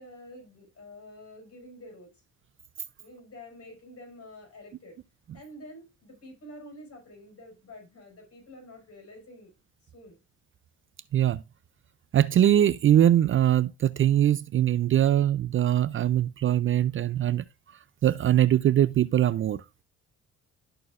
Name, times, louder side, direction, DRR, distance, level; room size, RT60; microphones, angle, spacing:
voice 1, 0.0-2.2 3.0-5.0 5.3-9.5 9.8-10.2, left 1 dB, 50° left, 4.8 m, -48 dB
voice 2, 12.1-17.4 18.0-19.6, right 11 dB, 45° right, 0.4 m, -22 dB
12.5 x 4.4 x 2.4 m
cardioid pair, 90°, 30 cm